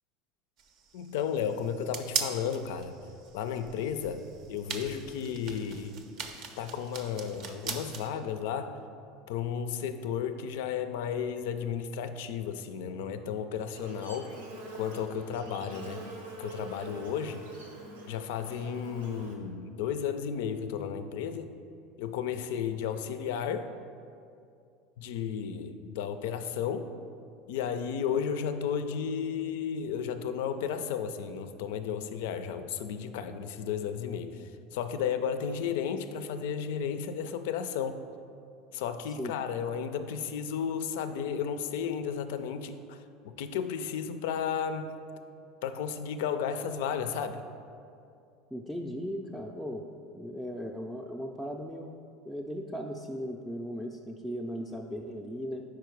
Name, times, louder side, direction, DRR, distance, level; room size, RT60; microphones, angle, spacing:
sound 1, 0.6-8.1, right 6 dB, 60° right, 0.6 m, -40 dB
voice 1, 0.9-2.9 3.3-4.2 4.5-6.0 6.6-8.8 9.3-14.3 14.7-16.0 16.4-17.4 18.1-21.5 22.0-23.7 25.0-26.9 27.5-34.4 34.7-38.0 38.7-43.0 43.4-45.0 45.6-47.4, left 7 dB, 70° left, 10 dB, 0.3 m, -33 dB
Buzz, 13.7-19.4, right 2 dB, 85° right, 0.8 m, -45 dB
voice 2, 48.5-49.9 50.1-51.9 52.2-55.6, equal, ahead, -2 dB, 0.4 m, -37 dB
4.7 x 4.5 x 4.6 m, 2.5 s
hypercardioid pair, 85°, 0 cm